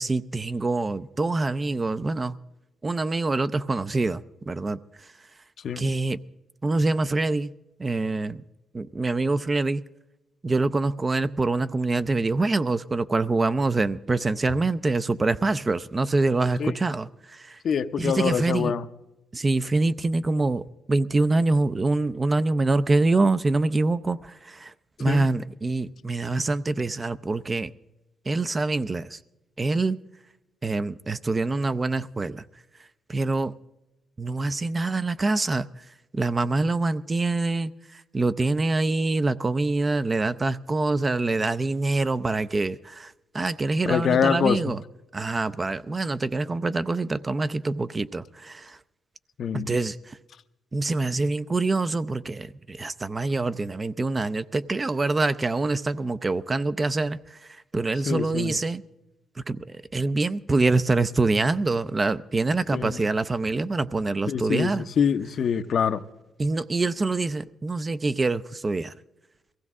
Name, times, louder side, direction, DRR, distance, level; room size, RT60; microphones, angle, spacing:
voice 1, 0.0-2.4 2.8-5.1 5.8-6.2 6.6-7.5 7.8-8.4 8.7-9.8 10.4-17.6 18.0-18.7 19.3-24.7 25.0-27.7 28.3-29.2 29.6-30.0 30.6-32.4 33.1-33.5 34.2-35.9 36.1-44.8 45.1-48.8 49.5-50.2 50.7-58.8 59.4-64.9 66.4-69.0, right 3 dB, 25° right, 0.5 m, -25 dB
voice 2, 17.6-18.8 25.1-25.3 43.9-44.6 49.4-49.7 58.1-58.5 62.7-63.0 64.3-66.0, left 7 dB, 60° left, 0.7 m, -25 dB
22.0 x 15.5 x 3.6 m
cardioid pair, 90°, 0 cm